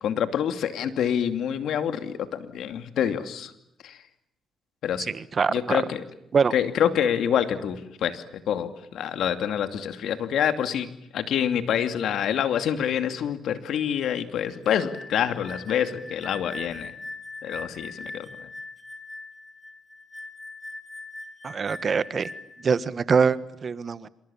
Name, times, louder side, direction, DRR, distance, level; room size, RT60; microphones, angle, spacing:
voice 1, 0.0-3.5 3.8-4.0 4.8-5.1 5.5-6.0 6.5-10.9 11.1-16.9 17.4-18.3, left 9 dB, 75° left, 9 dB, 2.6 m, -26 dB
voice 2, 5.1-5.8 6.3-6.5 21.4-22.3 22.6-24.1, right 5 dB, 40° right, 15 dB, 1.4 m, -24 dB
sound 1, 14.5-22.7, left 2 dB, 5° left, 4.7 m, -41 dB
27.5 x 26.5 x 7.2 m, 0.80 s
cardioid pair, 90°, 0 cm